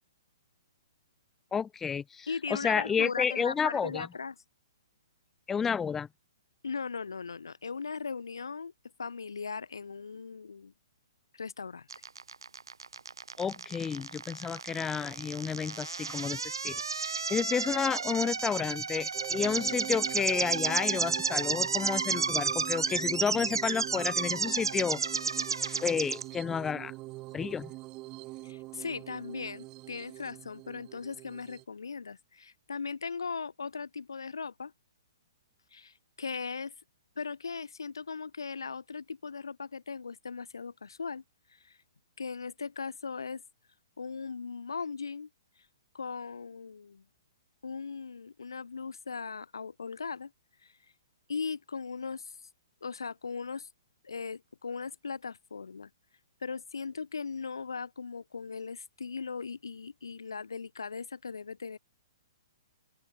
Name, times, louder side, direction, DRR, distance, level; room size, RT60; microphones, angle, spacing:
voice 1, 1.5-4.1 5.5-6.1 13.4-25.0 25.7-26.9 27.3-27.7, left 6 dB, 15° left, 1.4 m, -31 dB
voice 2, 2.3-4.4 6.6-8.7 9.0-10.7 11.3-11.9 28.4-34.7 35.7-36.7 37.2-41.2 41.5-41.8 42.2-43.4 44.0-45.3 45.9-47.0 47.6-50.3 50.6-50.7 51.3-52.3 52.8-53.7 54.0-55.9 56.4-61.8, left 5 dB, 75° left, 1.9 m, -38 dB
sound 1, 11.9-26.2, right 5 dB, 80° right, 2.0 m, -32 dB
sound 2, 19.1-31.6, right 20 dB, 30° right, 4.8 m, -44 dB
open air
figure-of-eight pair, 125°, 2 cm